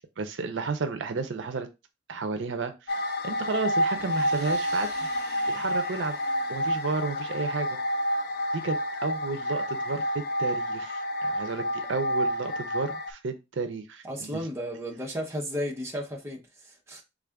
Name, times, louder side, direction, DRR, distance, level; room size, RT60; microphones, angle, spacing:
voice 1, 0.2-1.7 2.1-4.9 5.5-6.2 6.5-7.8 8.5-14.4, right 4 dB, 75° right, 0.5 m, -32 dB
sound 1, 2.9-13.1, equal, 55° left, 0.4 m, -29 dB
sound 2, 3.9-7.7, right 4 dB, 60° right, 1.1 m, -48 dB
voice 2, 14.0-17.0, equal, 15° right, 0.8 m, -34 dB
3.5 x 2.5 x 3.4 m
head